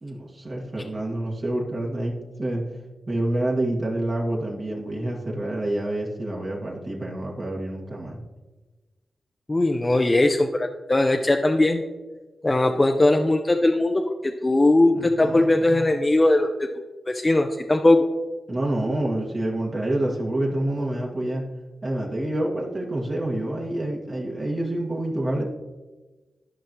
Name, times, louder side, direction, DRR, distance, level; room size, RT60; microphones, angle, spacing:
voice 1, 0.0-2.6 3.1-8.2 14.9-15.9 18.5-21.4 21.8-25.5, right 1 dB, 45° right, -2 dB, 1.8 m, -27 dB
voice 2, 9.5-11.8 12.4-16.7 17.1-18.1, left 2 dB, 30° left, 4 dB, 0.6 m, -20 dB
12.5 x 5.2 x 3.0 m, 1.2 s
supercardioid pair, 40°, 0 cm